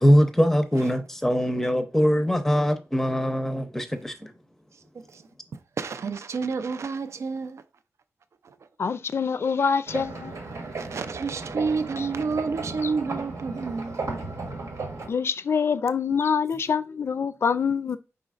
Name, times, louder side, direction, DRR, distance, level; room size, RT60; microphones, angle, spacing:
voice 1, 0.0-4.3, equal, 5° left, 0.6 m, -22 dB
voice 2, 5.5-7.6 8.4-8.6 10.6-14.0, right 4 dB, 65° right, 0.5 m, -30 dB
voice 3, 8.8-10.4 12.0-12.1 12.8-12.9 15.1-18.0, left 6 dB, 55° left, 0.4 m, -25 dB
sound 1, 9.9-15.1, right 3 dB, 85° right, 1.2 m, -35 dB
5.0 x 3.9 x 2.4 m
wide cardioid pair, 165°, 5 cm